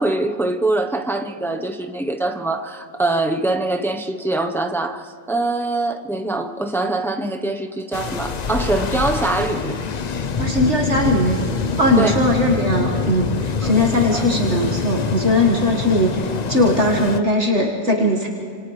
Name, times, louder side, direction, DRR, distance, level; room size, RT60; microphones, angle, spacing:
voice 1, 0.0-9.8 12.0-12.2 13.6-14.3, right 2 dB, ahead, 4 dB, 0.7 m, -23 dB
sound 1, 7.9-17.2, left 5 dB, 45° left, 0.6 m, -25 dB
voice 2, 10.4-11.4 11.8-16.2 16.5-18.3, left 1 dB, 55° right, -1 dB, 2.1 m, -19 dB
29.0 x 27.5 x 3.3 m, 2.3 s
omnidirectional pair, 1.4 m